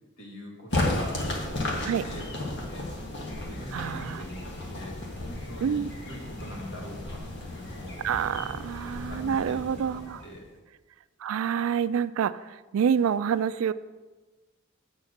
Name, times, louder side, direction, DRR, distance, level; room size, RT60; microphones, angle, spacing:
voice 1, 0.2-2.3 2.6-2.9 3.5-8.0 8.4-8.5 9.0-9.6 9.9-10.5, equal, 90° left, -2 dB, 2.1 m, -44 dB
sound 1, 0.7-10.5, left 1 dB, 60° left, 1.5 m, -34 dB
voice 2, 3.7-4.2 5.6-5.9 8.0-10.2 11.2-13.7, right 7 dB, 85° right, 16 dB, 0.3 m, -27 dB
8.2 x 4.3 x 6.4 m, 1.3 s
head